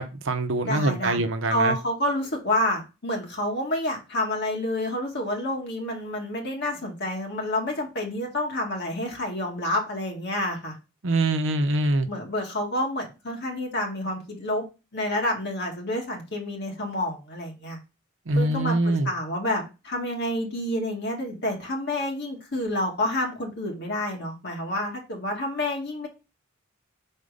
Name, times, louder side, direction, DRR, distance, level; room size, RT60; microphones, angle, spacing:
voice 1, 0.0-1.8 11.0-12.1 18.3-19.1, right 2 dB, 65° right, 0.8 m, -24 dB
voice 2, 0.7-1.2 1.5-10.7 12.1-14.7 14.9-17.8 18.3-26.1, left 1 dB, 55° left, 2.2 m, -29 dB
5.5 x 4.3 x 5.1 m
head